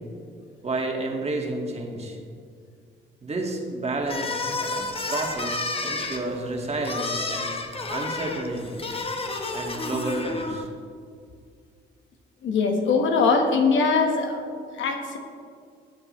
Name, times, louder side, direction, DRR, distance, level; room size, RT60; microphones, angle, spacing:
voice 1, 0.6-2.2 3.2-7.5 7.9-8.9 9.5-10.7, right 2 dB, 30° right, 0 dB, 2.0 m, -30 dB
sound 1, 4.0-10.7, left 2 dB, 30° left, 1.1 m, -31 dB
voice 2, 12.4-14.4 14.7-15.2, left 4 dB, 75° left, 4 dB, 1.4 m, -22 dB
17.5 x 7.9 x 3.2 m, 2.2 s
cardioid pair, 90°, 20 cm